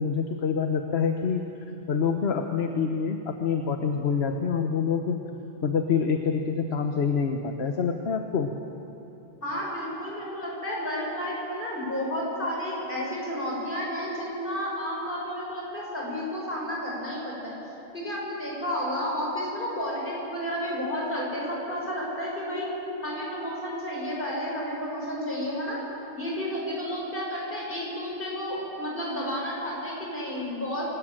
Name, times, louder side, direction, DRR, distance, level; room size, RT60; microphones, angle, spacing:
voice 1, 0.0-1.4 1.9-5.2 5.6-8.5, left 6 dB, 70° left, 5 dB, 1.3 m, -26 dB
voice 2, 9.4-17.5 17.9-22.7 23.0-25.8 26.1-30.9, equal, 55° left, -4 dB, 6.9 m, -31 dB
27.0 x 14.0 x 9.0 m, 3.0 s
omnidirectional pair, 1.1 m